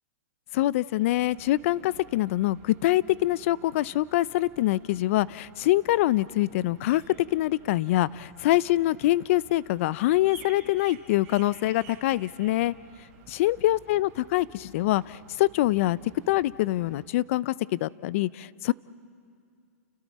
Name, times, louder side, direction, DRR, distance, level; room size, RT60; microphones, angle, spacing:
voice 1, 0.5-12.7 13.4-16.0 16.3-18.7, left 16 dB, 55° left, 20 dB, 0.5 m, -25 dB
sound 1, 0.9-17.0, right 7 dB, 45° right, 4.3 m, -53 dB
30.0 x 29.5 x 4.2 m, 2.3 s
hypercardioid pair, 135°, 8 cm